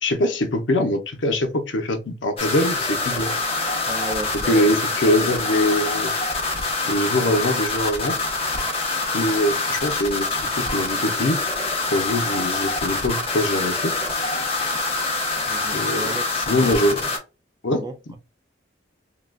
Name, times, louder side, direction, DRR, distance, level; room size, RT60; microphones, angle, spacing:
voice 1, 0.0-3.3 4.5-6.1 6.9-8.2 9.1-11.4 11.9-13.9 15.7-17.0 17.6-17.8, left 1 dB, 90° left, 0.7 m, -23 dB
sound 1, 2.4-17.2, left 3 dB, 30° left, 0.9 m, -25 dB
voice 2, 3.9-4.9 5.2-5.4 15.5-16.9 17.7-18.2, right 2 dB, 20° right, 0.3 m, -34 dB
3.8 x 2.3 x 2.2 m
head